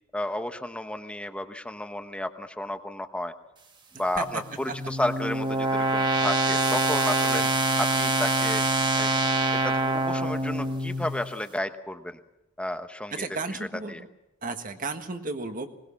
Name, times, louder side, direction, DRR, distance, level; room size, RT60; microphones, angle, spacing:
voice 1, 0.1-3.3 4.0-7.4 7.8-8.6 9.0-9.1 9.6-12.2 12.6-13.1 13.9-14.0, left 1 dB, 5° left, 8 dB, 0.9 m, -32 dB
sound 1, 4.2-11.3, right 2 dB, 25° right, 1.5 m, -25 dB
voice 2, 13.1-14.1 14.4-15.7, right 3 dB, 45° right, 7 dB, 1.6 m, -33 dB
21.5 x 19.5 x 7.1 m, 0.92 s
head